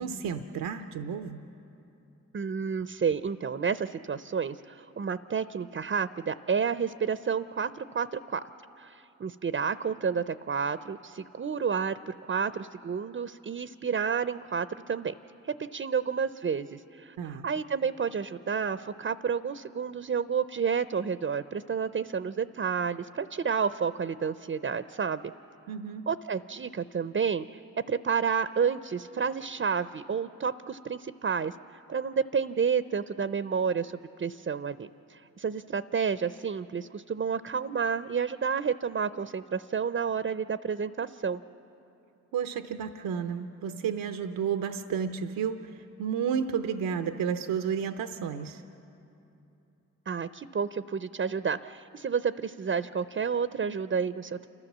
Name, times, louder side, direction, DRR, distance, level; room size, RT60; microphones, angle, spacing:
voice 1, 0.0-1.4 17.2-17.5 25.7-26.1 42.3-48.6, right 7 dB, 80° right, 8 dB, 0.7 m, -32 dB
voice 2, 2.3-8.4 8.8-15.1 15.4-25.3 26.1-27.6 27.9-31.5 31.9-33.9 34.2-41.4 50.1-54.5, right 6 dB, 35° right, 13 dB, 0.6 m, -30 dB
28.5 x 13.0 x 7.4 m, 2.9 s
supercardioid pair, 40°, 33 cm